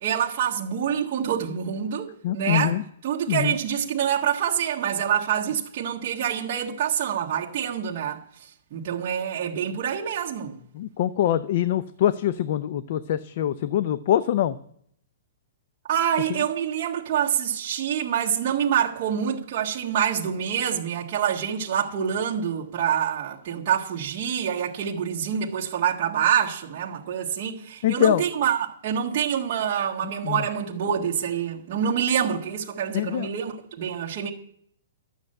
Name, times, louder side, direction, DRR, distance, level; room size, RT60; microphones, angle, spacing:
voice 1, 0.0-2.1 2.3-2.8 3.0-8.2 8.7-10.5 15.9-34.3, right 8 dB, 40° right, 1.5 m, -26 dB
voice 2, 2.2-2.8 3.3-3.6 10.7-14.6 27.8-28.3 30.2-30.4 32.9-33.3, left 11 dB, 50° left, 0.5 m, -24 dB
12.0 x 6.6 x 8.8 m
hypercardioid pair, 160°, 0 cm